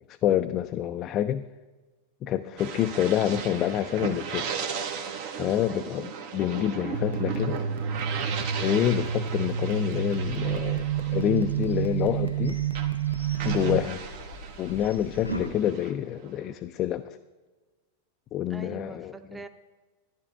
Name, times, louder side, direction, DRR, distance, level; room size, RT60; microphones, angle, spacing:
voice 1, 0.2-1.5 2.2-4.6 5.4-7.6 8.6-12.6 13.4-14.0 14.6-17.2 18.3-19.1, left 11 dB, 35° left, 8 dB, 0.3 m, -27 dB
sound 1, 2.6-12.4 12.7-16.5, right 6 dB, 50° right, 0.8 m, -36 dB
voice 2, 5.7-6.1 13.6-14.0 18.5-19.5, right 4 dB, 10° right, 8 dB, 0.7 m, -43 dB
sound 2, 6.9-13.8, right 9 dB, 65° right, 0.5 m, -29 dB
sound 3, 10.2-15.5, equal, 90° left, 1.0 m, -41 dB
14.0 x 10.5 x 2.4 m, 1.3 s
figure-of-eight pair, 90°, 0 cm